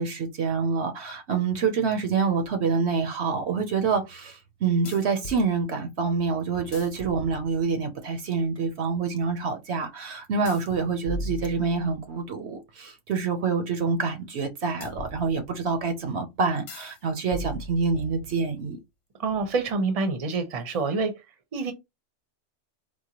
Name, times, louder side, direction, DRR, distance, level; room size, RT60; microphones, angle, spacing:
voice 1, 0.0-18.8, right 5 dB, 65° right, 0.9 m, -27 dB
sound 1, 2.4-2.5 4.9-5.5 6.5-7.9 10.5-12.2 14.8-15.8 16.7-17.0 17.3-18.7, left 1 dB, 65° left, 0.7 m, -39 dB
voice 2, 19.2-21.1 21.5-21.7, right 4 dB, 35° right, 0.7 m, -26 dB
4.6 x 2.2 x 2.8 m
omnidirectional pair, 1.3 m